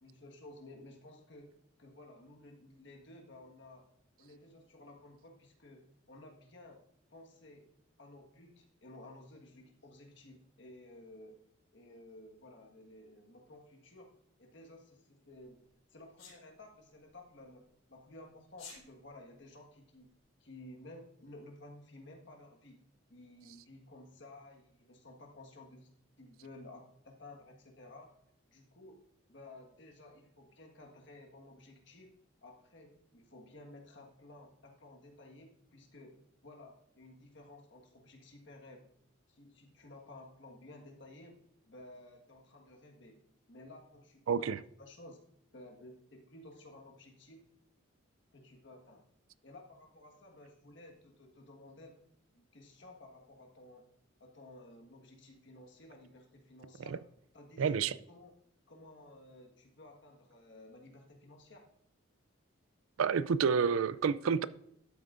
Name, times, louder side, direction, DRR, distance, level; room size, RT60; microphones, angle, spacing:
voice 1, 0.0-1.5 1.8-3.9 4.2-6.8 7.1-7.7 8.0-11.4 11.7-14.1 14.4-15.6 15.9-20.1 20.4-22.8 23.1-25.9 26.2-28.1 28.5-29.0 29.3-32.1 32.4-38.9 39.3-41.4 41.7-43.2 43.5-45.2 45.5-47.4 48.3-49.1 49.4-52.0 52.3-53.8 54.2-56.9 57.3-58.4 58.7-61.6, left 2 dB, 55° left, 1.5 m, -54 dB
Sneeze, 16.2-16.4 18.5-18.8, left 5 dB, 80° left, 3.9 m, -49 dB
voice 2, 44.3-44.6 56.9-57.0 57.6-57.9 63.0-64.5, right 6 dB, 80° right, 0.4 m, -29 dB
12.5 x 7.9 x 2.5 m
head